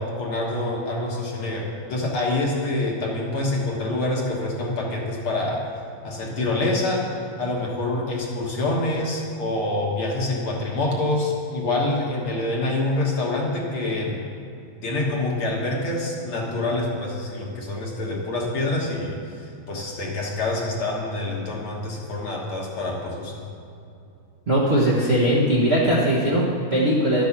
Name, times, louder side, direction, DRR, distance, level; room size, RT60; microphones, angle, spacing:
voice 1, 0.0-5.6 6.0-7.1 7.4-14.1 14.8-23.4, left 2 dB, 55° left, -2 dB, 2.0 m, -26 dB
voice 2, 24.5-27.2, equal, 35° right, -6 dB, 1.0 m, -20 dB
12.0 x 8.2 x 5.9 m, 2.6 s
omnidirectional pair, 3.3 m